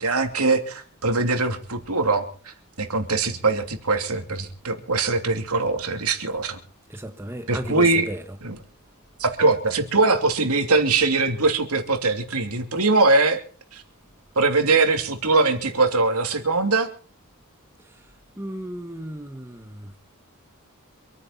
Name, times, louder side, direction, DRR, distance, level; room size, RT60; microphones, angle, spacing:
voice 1, 0.0-6.6 7.5-8.1 8.4-8.6 9.2-13.4 13.7-13.8 14.4-16.9, right 3 dB, 85° right, 2.9 m, -22 dB
voice 2, 6.9-8.2 18.4-19.9, right 1 dB, 10° right, 1.3 m, -34 dB
27.0 x 9.9 x 4.2 m
head